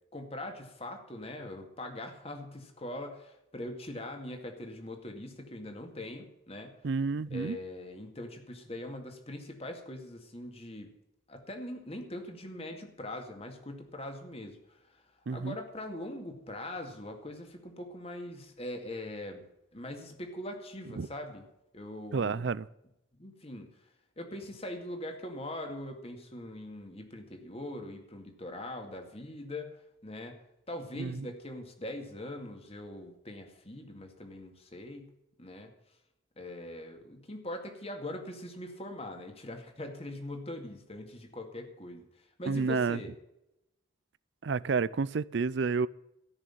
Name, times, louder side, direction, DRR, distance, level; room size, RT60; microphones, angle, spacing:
voice 1, 0.1-6.7 7.3-10.9 11.3-15.0 15.3-19.4 19.7-21.5 21.7-22.5 23.2-23.7 24.2-29.8 30.0-30.4 30.7-35.1 35.4-35.7 36.4-43.1, left 1 dB, 30° left, 2.1 m, -42 dB
voice 2, 6.8-7.6 15.3-15.6 21.0-21.1 22.1-22.7 31.0-31.3 42.5-43.0 44.4-45.9, right 4 dB, 60° right, 0.4 m, -30 dB
14.0 x 6.5 x 9.0 m
head